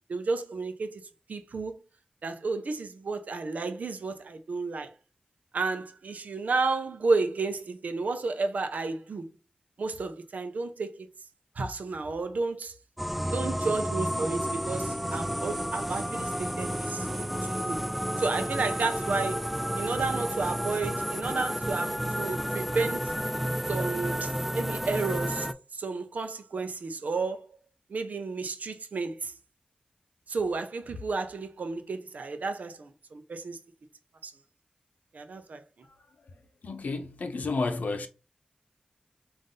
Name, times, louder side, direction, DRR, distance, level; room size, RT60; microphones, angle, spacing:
voice 1, 0.1-1.0 1.3-1.7 2.2-4.9 5.5-9.3 9.8-11.1 11.6-12.7 13.3-17.1 17.4-17.8 18.2-19.4 19.8-23.1 23.7-27.6 27.9-29.3 30.3-33.6 34.2-34.3 35.1-35.6, right 3 dB, 80° right, 0.6 m, -32 dB
sound 1, 13.0-25.5, equal, 5° right, 0.3 m, -31 dB
voice 2, 36.6-38.1, left 3 dB, 85° left, 0.6 m, -31 dB
3.7 x 2.6 x 3.8 m
wide cardioid pair, 80°, 3 cm